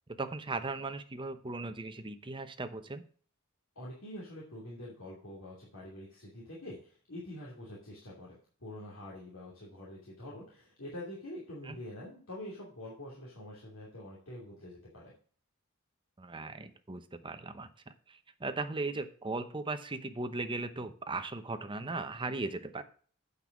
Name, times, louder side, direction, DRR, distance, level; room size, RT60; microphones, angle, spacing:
voice 1, 0.1-3.0 11.6-11.8 16.2-22.8, right 3 dB, 25° right, 9 dB, 0.8 m, -38 dB
voice 2, 3.7-15.1, left 1 dB, 65° left, -6 dB, 2.8 m, -46 dB
8.5 x 5.5 x 6.0 m, 0.44 s
head